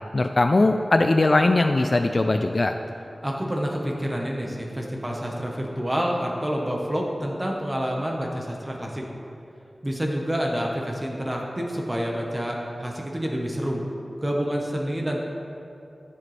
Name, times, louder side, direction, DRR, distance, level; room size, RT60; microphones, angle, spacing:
voice 1, 0.1-2.7, left 2 dB, 45° left, 6 dB, 0.3 m, -20 dB
voice 2, 3.2-9.0 9.8-13.9 14.2-15.2, equal, 20° right, -1 dB, 1.1 m, -28 dB
13.0 x 7.6 x 3.3 m, 2.6 s
wide cardioid pair, 90°, 0 cm